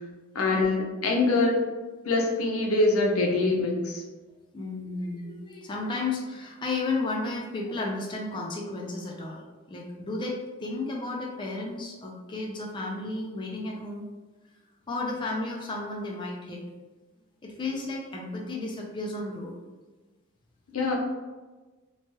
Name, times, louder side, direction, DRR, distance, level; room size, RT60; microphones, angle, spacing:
voice 1, 0.3-1.6 2.0-4.0 20.7-21.0, left 2 dB, 85° left, 0 dB, 0.6 m, -24 dB
voice 2, 4.5-9.4 9.7-14.1 14.9-16.6 17.4-19.5, left 2 dB, 20° left, -2 dB, 0.3 m, -33 dB
3.0 x 2.2 x 2.8 m, 1.2 s
head